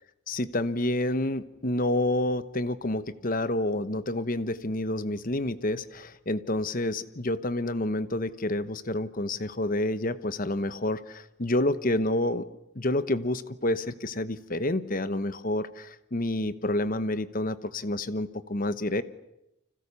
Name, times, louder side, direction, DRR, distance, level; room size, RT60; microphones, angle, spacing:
voice 1, 0.3-12.5 12.7-19.0, left 1 dB, 40° left, 13 dB, 1.0 m, -29 dB
30.0 x 25.5 x 7.0 m, 0.87 s
head